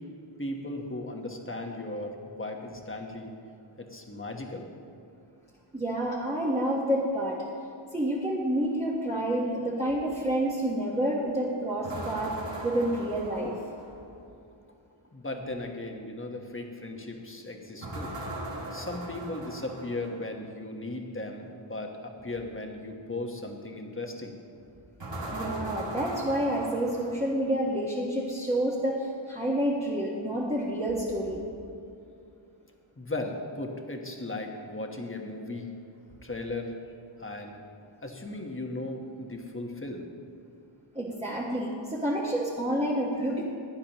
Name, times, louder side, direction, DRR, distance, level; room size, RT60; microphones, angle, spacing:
voice 1, 0.4-3.3 3.8-4.7 15.1-18.2 18.7-24.4 33.0-35.7 36.2-36.7 37.2-37.6 38.0-40.1, left 2 dB, 25° left, 2 dB, 1.2 m, -37 dB
voice 2, 5.7-7.4 7.9-12.3 12.6-13.5 25.3-31.4 40.9-43.4, right 1 dB, 15° right, -7 dB, 1.4 m, -29 dB
sound 1, 11.8-14.2 17.8-20.3 25.0-27.6, right 1 dB, 60° right, 2.2 m, -39 dB
15.5 x 10.5 x 3.0 m, 2.4 s
wide cardioid pair, 85°, 48 cm